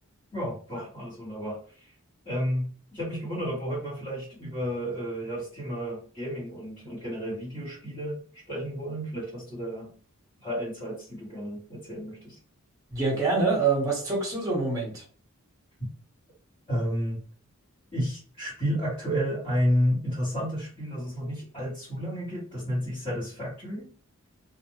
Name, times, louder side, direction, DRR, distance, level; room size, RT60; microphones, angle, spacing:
voice 1, 0.3-1.9 2.2-9.9 10.4-12.4 15.8-15.9 16.7-17.2 17.9-23.9, equal, 25° left, -12 dB, 1.4 m, -31 dB
voice 2, 12.9-15.0, right 4 dB, 15° right, -3 dB, 1.2 m, -25 dB
2.5 x 2.4 x 3.0 m, 0.41 s
head